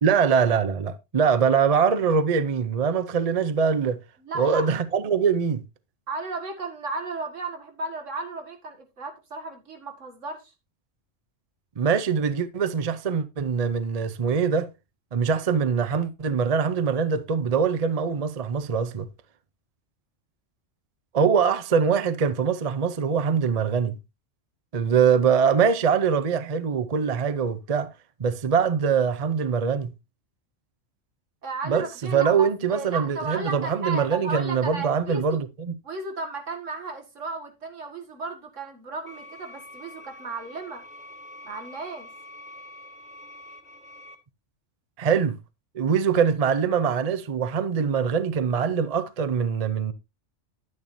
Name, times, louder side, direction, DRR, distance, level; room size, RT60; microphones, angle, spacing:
voice 1, 0.0-4.0 4.4-5.6 11.8-14.7 15.1-19.1 21.1-24.0 24.7-27.9 28.2-29.9 31.6-35.7 45.0-45.4 45.7-49.9, right 6 dB, 35° right, 0.7 m, -23 dB
voice 2, 4.2-4.7 6.1-10.5 31.4-35.4 35.8-40.8 41.4-42.1, right 3 dB, 80° right, 2.2 m, -34 dB
sound 1, 39.1-44.1, left 1 dB, 5° right, 1.6 m, -45 dB
10.5 x 9.7 x 2.7 m
omnidirectional pair, 1.3 m